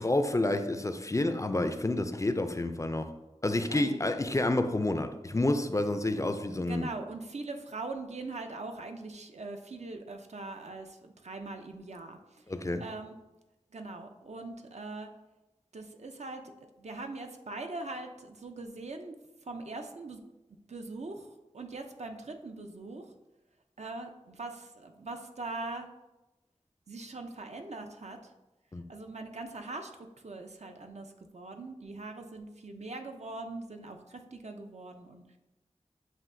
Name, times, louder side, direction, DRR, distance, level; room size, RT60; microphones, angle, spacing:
voice 1, 0.0-3.1 3.4-6.9 12.5-12.8 28.7-28.8, left 2 dB, 25° left, 8 dB, 0.4 m, -29 dB
voice 2, 6.7-12.5 12.8-13.1 13.7-15.1 15.7-16.5 16.8-19.1 19.4-20.2 20.7-21.3 21.5-23.1 23.8-25.9 26.9-28.3 28.9-29.9 30.2-35.4, right 3 dB, 65° right, 5 dB, 0.5 m, -41 dB
7.3 x 2.7 x 2.6 m, 1.0 s
wide cardioid pair, 45°, 12 cm